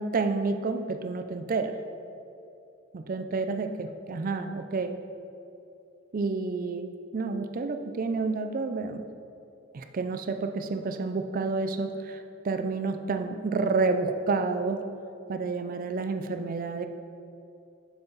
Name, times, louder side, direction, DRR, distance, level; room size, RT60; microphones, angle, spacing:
voice 1, 0.0-1.7 2.9-5.0 6.1-9.1 9.7-14.8 15.3-16.9, right 4 dB, 45° right, 8 dB, 0.4 m, -29 dB
7.0 x 5.7 x 4.0 m, 2.6 s
head